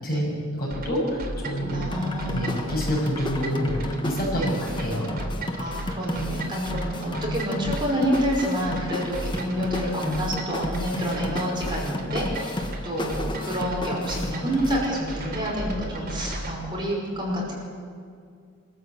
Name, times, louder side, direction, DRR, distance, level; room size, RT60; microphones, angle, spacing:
voice 1, 0.0-1.9 2.3-5.2, equal, 45° left, -3 dB, 7.1 m, -27 dB
sound 1, 0.7-16.6, right 1 dB, 45° right, 3.0 m, -35 dB
voice 2, 1.7-2.7 4.4-4.5 5.6-17.5, equal, 20° right, -4 dB, 5.4 m, -28 dB
sound 2, 1.9-14.9, left 1 dB, 20° left, 1.2 m, -33 dB
25.5 x 14.0 x 8.4 m, 2.2 s
head